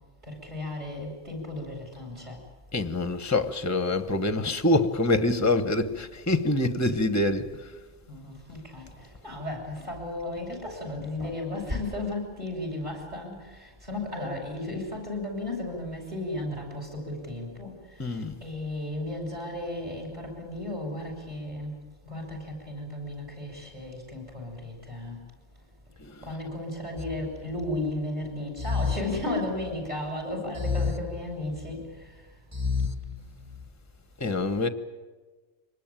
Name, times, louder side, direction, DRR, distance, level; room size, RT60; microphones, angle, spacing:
voice 1, 0.2-2.4 8.1-21.7 22.0-25.2 26.2-32.2, left 1 dB, 35° right, 7.0 m, -34 dB
voice 2, 2.7-7.7 18.0-18.4 26.0-26.4 34.2-34.7, left 2 dB, 15° left, 1.0 m, -26 dB
sound 1, 27.0-27.9 28.6-29.9 30.6-31.9 32.5-33.7, left 5 dB, 15° right, 0.9 m, -32 dB
24.5 x 20.0 x 9.0 m
omnidirectional pair, 1.3 m